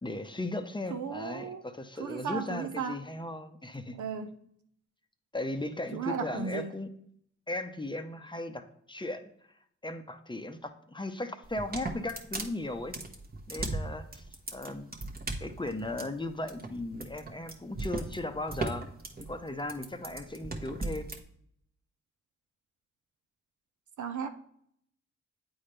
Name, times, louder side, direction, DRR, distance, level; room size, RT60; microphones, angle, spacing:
voice 1, 0.0-4.0 5.3-6.9 7.5-9.3 9.8-12.9 13.5-14.3 14.5-14.9 15.4-18.9 19.2-21.1, left 2 dB, 15° left, 7 dB, 0.7 m, -37 dB
voice 2, 0.9-1.6 2.0-3.0 4.0-4.3 5.9-6.7 24.0-24.3, right 6 dB, 75° right, 7 dB, 0.7 m, -35 dB
sound 1, 11.4-21.2, right 2 dB, 30° right, 1.1 m, -37 dB
8.6 x 4.2 x 3.3 m, 0.68 s
cardioid pair, 55°, 30 cm